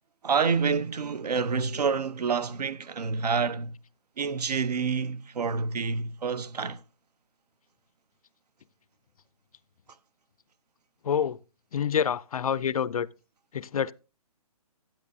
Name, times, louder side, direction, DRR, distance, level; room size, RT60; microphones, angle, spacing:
voice 1, 0.2-3.7 4.2-6.8, right 5 dB, 80° right, 0.8 m, -28 dB
voice 2, 11.0-11.4 11.7-13.1 13.5-13.9, left 8 dB, 60° left, 0.4 m, -27 dB
12.0 x 8.9 x 2.7 m
hypercardioid pair, 175°, 20 cm